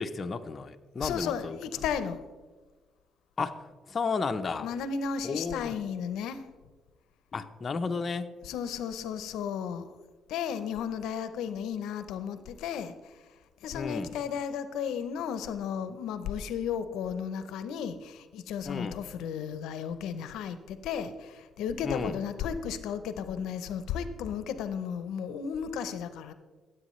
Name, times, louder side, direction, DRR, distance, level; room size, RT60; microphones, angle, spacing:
voice 1, 0.0-1.6 3.4-3.6 3.9-4.7 5.2-5.7 7.3-8.3 13.7-14.2 18.7-19.0 21.8-22.1, left 4 dB, 40° left, 7 dB, 0.6 m, -33 dB
voice 2, 1.0-2.2 4.6-6.4 8.4-9.9 10.3-12.9 13.6-26.3, left 7 dB, 90° left, 11 dB, 0.6 m, -34 dB
15.5 x 8.0 x 3.1 m, 1.4 s
cardioid pair, 90°, 0 cm